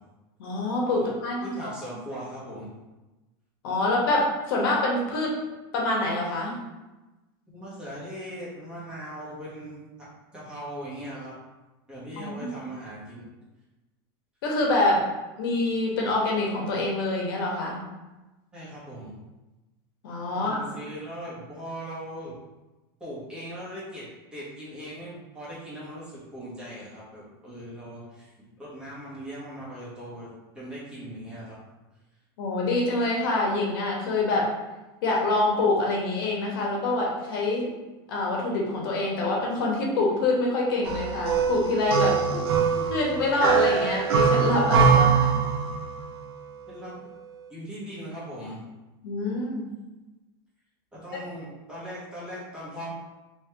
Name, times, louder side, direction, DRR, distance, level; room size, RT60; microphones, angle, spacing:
voice 1, 0.4-1.7 3.6-5.3 5.7-6.5 12.2-12.5 14.4-15.1 15.4-17.8 20.0-20.6 32.4-34.5 35.0-37.7 38.1-42.4 42.9-45.4 49.0-49.7, left 2 dB, 65° left, -2 dB, 1.0 m, -26 dB
voice 2, 1.4-2.7 7.5-9.8 10.3-11.4 11.9-13.3 18.5-19.2 20.3-22.4 23.0-28.3 28.6-31.6 42.4-42.6 44.6-45.2 46.7-46.9 47.5-48.7 50.9-52.9, equal, 5° right, -8 dB, 1.1 m, -39 dB
sound 1, 40.8-46.0, right 6 dB, 80° right, 0.5 m, -23 dB
3.1 x 3.1 x 3.3 m, 1.1 s
supercardioid pair, 170°, 13 cm